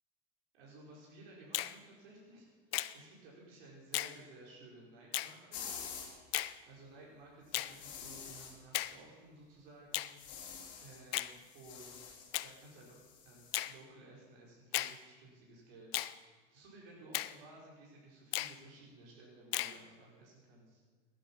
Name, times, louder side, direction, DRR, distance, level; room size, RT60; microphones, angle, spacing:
voice 1, 0.5-5.6 6.7-10.3 10.8-12.1 12.4-16.2 16.5-20.8, right 2 dB, 70° right, -4 dB, 5.7 m, -56 dB
Finger snapping, 1.5-1.8 2.7-2.9 3.9-4.2 5.1-5.3 6.3-6.5 7.5-7.7 8.7-9.0 9.9-10.1 11.1-11.3 12.3-12.5 13.5-13.7 14.7-15.0 15.9-16.1 17.1-17.3 18.3-18.6 19.5-19.8, left 16 dB, 85° left, 0.7 m, -35 dB
sound 1, 5.5-6.1 7.6-8.6 10.0-11.0 11.3-13.7, left 7 dB, 40° left, 3.8 m, -48 dB
18.5 x 11.0 x 5.9 m, 1.4 s
supercardioid pair, 130°, 30 cm